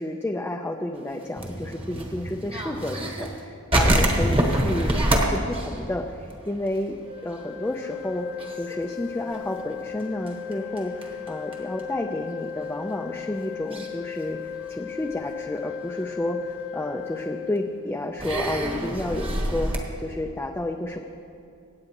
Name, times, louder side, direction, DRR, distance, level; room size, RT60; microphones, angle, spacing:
voice 1, 0.0-7.0 7.2-8.3 8.6-19.7 20.0-21.0, left 1 dB, 10° left, 1 dB, 0.5 m, -31 dB
sound 1, 1.2-3.4 3.7-7.0 7.2-7.3 7.7-8.1 8.4-11.8 12.6-12.7 13.7-13.9 14.5-15.1 15.7-15.8 17.1-17.2 18.2-19.8, right 1 dB, 25° right, 1.3 m, -26 dB
Organ, 7.0-18.1, left 8 dB, 90° right, 3.1 m, -36 dB
25.0 x 8.9 x 3.0 m, 2.5 s
head